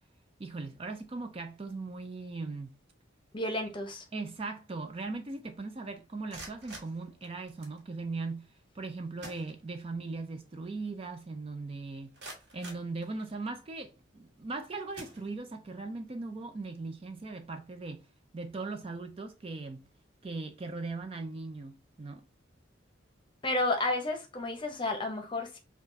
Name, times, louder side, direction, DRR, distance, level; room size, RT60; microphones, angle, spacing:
voice 1, 0.4-2.7 4.1-12.1 12.5-18.1 18.3-19.8 20.2-22.3, right 3 dB, 30° right, 0.4 m, -39 dB
voice 2, 3.3-4.0 23.4-25.6, left 2 dB, 25° left, 0.8 m, -31 dB
sound 1, 6.1-7.8 8.8-8.9 9.2-10.1 10.4-10.5 11.1-11.2 11.7-13.6 14.3-14.5 14.9-15.8, right 2 dB, 55° right, 1.6 m, -49 dB
5.8 x 2.4 x 2.6 m
head